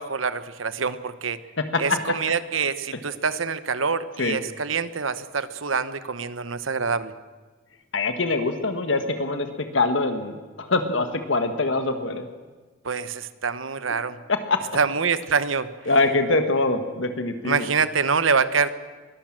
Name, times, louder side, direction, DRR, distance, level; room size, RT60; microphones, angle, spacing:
voice 1, 0.0-1.4 1.8-7.1 12.8-14.2 14.7-15.7 17.4-18.7, right 5 dB, 80° right, 13 dB, 1.1 m, -25 dB
voice 2, 1.6-2.0 4.2-4.4 7.9-12.3 14.3-14.6 15.9-17.7, left 3 dB, 70° left, 7 dB, 1.7 m, -24 dB
22.5 x 18.0 x 7.6 m, 1.3 s
head